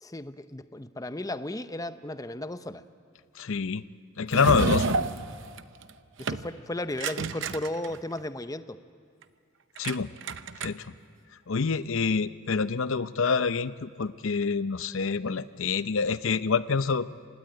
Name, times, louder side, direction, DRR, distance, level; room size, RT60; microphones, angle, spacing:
voice 1, 0.0-2.8 6.2-8.8, left 1 dB, 15° left, 11 dB, 0.6 m, -35 dB
voice 2, 3.4-3.8 4.2-5.0 9.8-10.1 10.6-10.9 11.5-17.1, left 5 dB, 65° left, 14 dB, 0.6 m, -26 dB
sound 1, 4.3-5.9 6.2-6.5 7.0-8.2 9.8-10.0 10.2-11.0, right 3 dB, 60° right, 0.8 m, -29 dB
26.5 x 18.5 x 9.0 m, 2.2 s
head